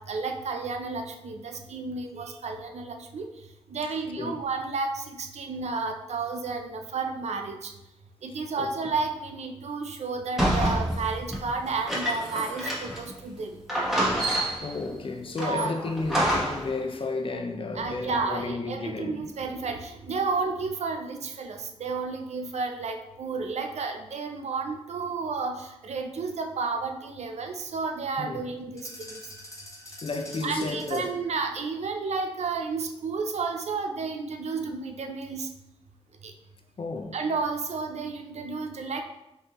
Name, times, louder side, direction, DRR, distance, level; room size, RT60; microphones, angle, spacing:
voice 1, 0.0-3.3 3.7-7.7 8.2-13.5 15.4-15.7 17.8-25.6 25.8-29.2 30.4-35.5 36.2-36.3 37.1-39.0, right 4 dB, 65° right, 0.5 m, -32 dB
sound 1, 10.4-13.1 13.4-13.5 13.7-14.8 15.4-16.7, right 1 dB, 5° right, 1.3 m, -27 dB
voice 2, 14.2-19.2 28.2-28.4 30.0-31.1 36.8-37.1, left 3 dB, 50° left, 0.6 m, -33 dB
sound 2, 28.8-31.3, left 1 dB, 25° left, 1.0 m, -44 dB
5.4 x 2.6 x 2.9 m
cardioid pair, 50°, 12 cm